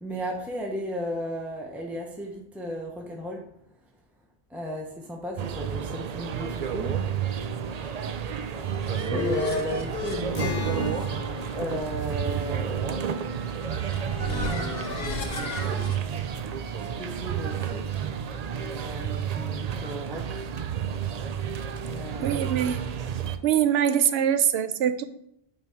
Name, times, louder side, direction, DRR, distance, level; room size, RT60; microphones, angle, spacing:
voice 1, 0.0-3.4 4.5-6.9 9.1-11.1 11.5-13.4 14.1-16.0 16.8-18.1 18.7-20.4 21.8-22.5, equal, ahead, 0 dB, 0.9 m, -35 dB
sound 1, 5.4-23.4, right 8 dB, 55° right, 0.5 m, -31 dB
sound 2, 8.5-16.0, left 4 dB, 70° left, 1.1 m, -35 dB
Acoustic guitar, 10.3-15.8, left 3 dB, 35° left, 1.0 m, -39 dB
voice 2, 22.2-22.8 23.4-25.0, right 9 dB, 85° right, 12 dB, 0.8 m, -23 dB
8.6 x 4.6 x 3.6 m, 0.74 s
omnidirectional pair, 1.0 m